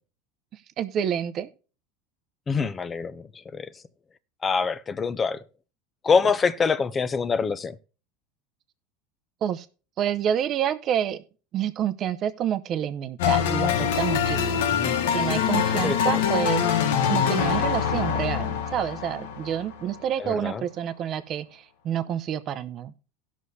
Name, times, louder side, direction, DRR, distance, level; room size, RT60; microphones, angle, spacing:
voice 1, 0.8-1.5 9.4-9.7 10.0-11.2 11.5-14.7 15.1-16.6 17.1-22.9, right 9 dB, 35° right, 0.7 m, -28 dB
voice 2, 2.5-3.7 4.4-5.4 6.0-7.8 14.7-15.0 15.8-16.2 20.2-20.6, left 5 dB, 20° left, 0.5 m, -25 dB
sound 1, 13.2-20.0, left 8 dB, 85° left, 1.1 m, -24 dB
18.0 x 6.2 x 2.7 m
supercardioid pair, 150°, 0 cm